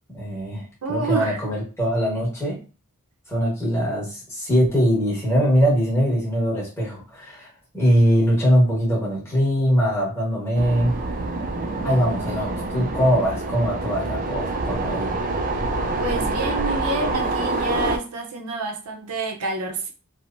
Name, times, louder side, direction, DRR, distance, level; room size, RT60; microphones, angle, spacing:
voice 1, 0.1-2.6 3.3-7.5 7.7-11.0 11.8-15.1, equal, 10° left, -6 dB, 1.1 m, -22 dB
voice 2, 0.8-1.4 16.0-19.9, right 2 dB, 80° right, 3 dB, 0.6 m, -28 dB
sound 1, 10.6-18.0, right 2 dB, 35° right, 0.3 m, -26 dB
2.9 x 2.0 x 2.5 m, 0.35 s
head